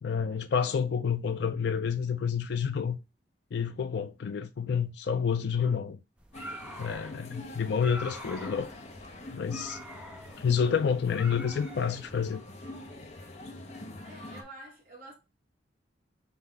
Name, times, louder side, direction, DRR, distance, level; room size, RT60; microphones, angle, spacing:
voice 1, 0.0-3.0 3.5-6.0 6.8-8.7 9.3-9.8 10.4-12.4, left 6 dB, 65° left, 0.4 m, -29 dB
sound 1, 6.2-12.3, equal, 5° right, 0.6 m, -46 dB
sound 2, 6.3-14.4, left 1 dB, 40° left, 0.7 m, -44 dB
voice 2, 14.0-15.1, right 1 dB, 50° right, 1.5 m, -48 dB
5.5 x 2.4 x 3.3 m
head